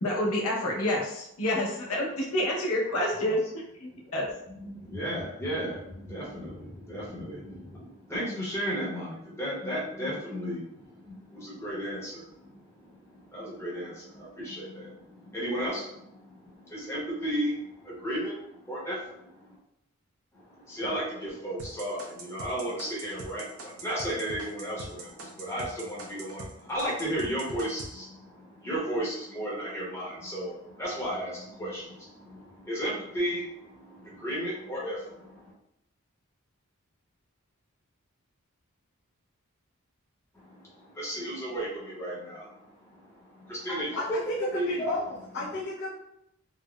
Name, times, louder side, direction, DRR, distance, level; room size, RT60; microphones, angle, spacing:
voice 1, 0.0-3.4 3.8-4.3, left 1 dB, 85° left, -2 dB, 0.8 m, -28 dB
voice 2, 4.2-19.5 20.3-35.5 40.3-45.0 45.5-45.6, equal, 10° left, -6 dB, 0.8 m, -34 dB
sound 1, 21.6-26.5 26.8-27.9, right 2 dB, 75° right, 0.5 m, -42 dB
voice 3, 44.0-45.9, left 1 dB, 50° left, -6 dB, 0.5 m, -33 dB
3.8 x 2.0 x 2.2 m, 0.79 s
head